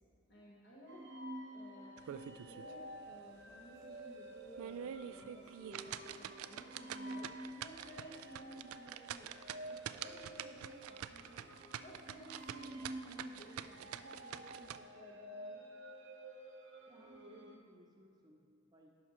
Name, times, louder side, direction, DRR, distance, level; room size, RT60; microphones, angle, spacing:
voice 1, 0.3-1.1 1.5-11.4 11.8-15.6, equal, 50° left, -6 dB, 1.1 m, -56 dB
sound 1, 0.9-17.6, right 1 dB, 55° right, 0.7 m, -51 dB
sound 2, 2.0-2.7 3.1-3.2 3.7-3.8 4.4-14.8, right 10 dB, 85° right, 0.3 m, -46 dB
voice 2, 16.9-18.9, equal, 20° right, 0 dB, 0.8 m, -61 dB
11.0 x 5.8 x 4.2 m, 2.3 s
head